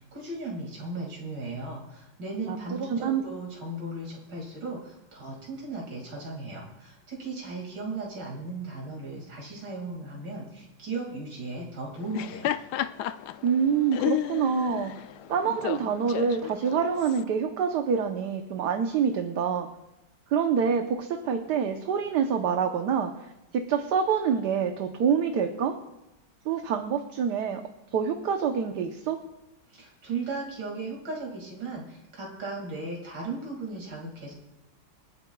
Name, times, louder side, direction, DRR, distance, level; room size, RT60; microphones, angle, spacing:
voice 1, 0.0-12.5 29.7-34.3, right 3 dB, 90° right, -2 dB, 3.0 m, -36 dB
voice 2, 2.5-3.2 13.4-14.9 15.3-19.7 20.3-23.1 23.5-25.7 26.4-27.6 27.9-29.2, right 7 dB, 70° right, 5 dB, 1.5 m, -26 dB
Laughter, 12.0-17.2, left 13 dB, 75° left, 1.1 m, -32 dB
28.5 x 9.6 x 2.3 m, 0.93 s
omnidirectional pair, 1.9 m